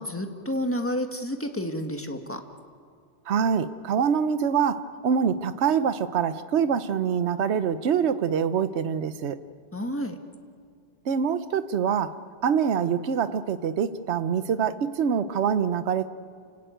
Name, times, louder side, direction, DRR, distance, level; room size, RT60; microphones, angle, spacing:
voice 1, 0.0-2.4 9.7-10.2, equal, 10° left, 5 dB, 1.6 m, -30 dB
voice 2, 3.3-9.4 11.1-12.1 12.4-16.1, right 7 dB, 70° right, 12 dB, 1.1 m, -25 dB
29.0 x 18.0 x 9.2 m, 2.4 s
omnidirectional pair, 1.2 m